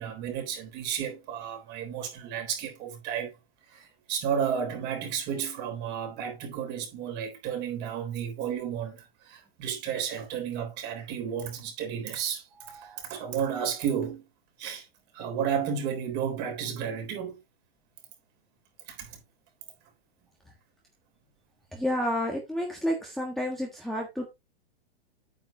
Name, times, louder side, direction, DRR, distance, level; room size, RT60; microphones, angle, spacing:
voice 1, 0.0-3.3 3.7-14.2 14.6-14.9 15.1-17.4 18.9-19.2, right 8 dB, 35° right, 3.6 m, -32 dB
voice 2, 21.7-24.3, equal, ahead, 1.4 m, -30 dB
9.0 x 8.2 x 2.8 m
hypercardioid pair, 140°, 30 cm